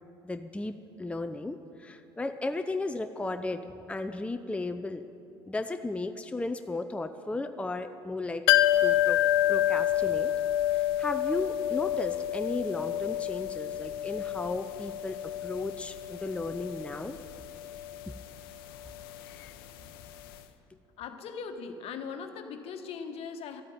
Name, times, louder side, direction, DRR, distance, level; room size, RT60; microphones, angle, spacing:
voice 1, 0.2-5.0 5.5-8.4 8.8-9.2 9.5-10.3 10.7-17.2, left 2 dB, 10° left, 8 dB, 0.7 m, -35 dB
sound 1, 8.5-20.1 20.3-20.4, left 12 dB, 75° left, 0.8 m, -29 dB
voice 2, 21.0-23.6, left 6 dB, 55° left, 7 dB, 1.4 m, -39 dB
13.0 x 8.6 x 9.5 m, 2.8 s
hypercardioid pair, 65°, 12 cm